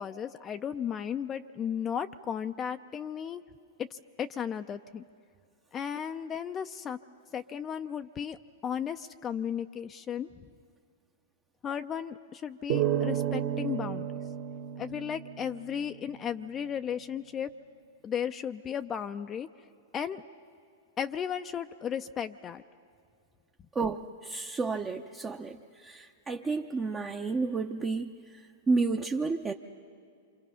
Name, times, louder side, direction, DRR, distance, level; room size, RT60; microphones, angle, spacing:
voice 1, 0.0-3.4 3.8-5.0 5.7-7.0 7.3-10.3 11.6-14.1 14.8-17.5 18.0-19.5 19.9-20.2 21.0-22.6, left 8 dB, 25° left, 8 dB, 0.5 m, -35 dB
sound 1, 12.7-16.1, right 10 dB, 55° right, 1.7 m, -32 dB
voice 2, 23.7-29.5, right 4 dB, 20° right, 1 dB, 0.8 m, -31 dB
27.5 x 25.0 x 5.7 m, 2.3 s
hypercardioid pair, 110°, 0 cm